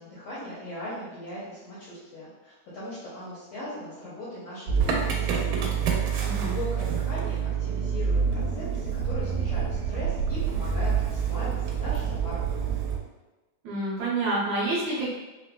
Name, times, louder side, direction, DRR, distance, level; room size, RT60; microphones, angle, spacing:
voice 1, 0.0-5.6 6.0-12.7, left 1 dB, 70° left, -9 dB, 1.5 m, -39 dB
Motor vehicle (road) / Engine starting, 4.7-13.0, right 6 dB, 85° right, 2.1 m, -27 dB
voice 2, 6.2-6.5 13.6-15.1, right 2 dB, 70° right, -7 dB, 1.9 m, -28 dB
5.6 x 2.0 x 2.2 m, 1.1 s
omnidirectional pair, 3.7 m